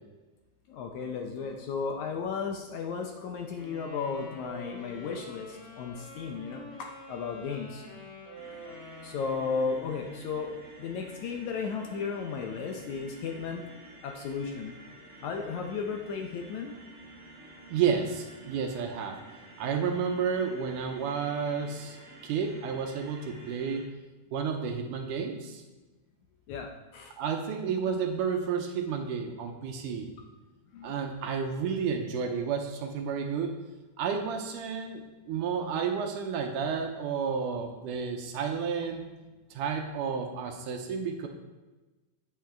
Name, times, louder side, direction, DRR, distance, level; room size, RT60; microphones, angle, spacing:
voice 1, 0.7-5.5 5.8-6.6 7.1-7.8 9.0-10.5 10.8-13.6 14.0-14.7 15.2-16.7 26.5-26.7 26.9-27.1 30.7-30.9, left 5 dB, 75° left, 3 dB, 1.9 m, -34 dB
sound 1, 3.5-10.1, equal, 90° left, 5.3 m, -47 dB
sound 2, 8.3-23.8, right 2 dB, 40° right, 1.1 m, -50 dB
voice 2, 17.7-19.2 19.6-22.0 22.2-23.9 24.3-25.6 27.2-30.1 30.8-33.6 34.0-39.1 39.5-41.3, right 6 dB, 75° right, 4 dB, 2.3 m, -31 dB
8.4 x 8.1 x 4.4 m, 1.2 s
omnidirectional pair, 3.9 m